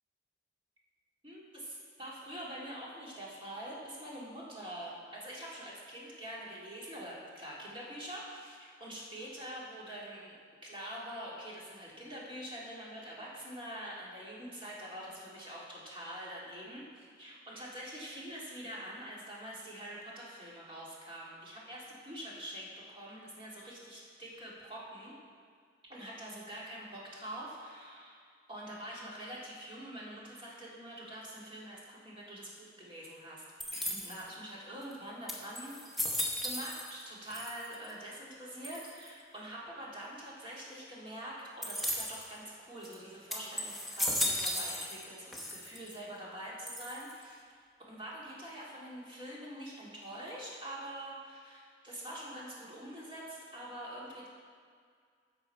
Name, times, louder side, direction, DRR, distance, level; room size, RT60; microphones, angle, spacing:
voice 1, 1.2-10.3 10.6-25.2 25.9-28.2 28.5-33.4 33.9-35.8 36.4-47.4 47.9-54.3, right 1 dB, 25° right, -6 dB, 2.0 m, -45 dB
sound 1, 33.6-34.3 34.9-35.0 35.3-37.0 37.3-37.9 38.6-39.1 41.6-42.3 42.8-43.0 43.3-45.1 45.3-46.0 46.7-47.2, left 1 dB, ahead, 0.9 m, -36 dB
11.0 x 6.4 x 4.4 m, 2.1 s
head